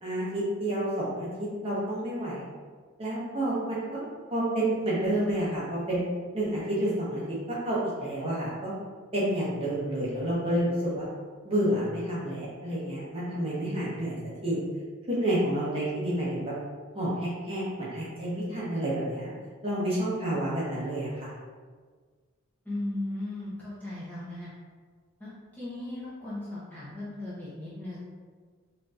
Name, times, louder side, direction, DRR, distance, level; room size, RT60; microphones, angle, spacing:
voice 1, 0.0-2.4 3.0-4.0 4.3-6.0 6.3-7.2 7.5-8.7 9.1-11.1 11.4-14.2 14.4-14.6 15.1-16.5 16.9-19.3 19.6-21.3, right 1 dB, 25° right, -8 dB, 0.9 m, -29 dB
voice 2, 22.6-24.5 25.2-28.0, left 1 dB, 5° left, -10 dB, 0.8 m, -37 dB
4.3 x 2.7 x 2.5 m, 1.5 s
head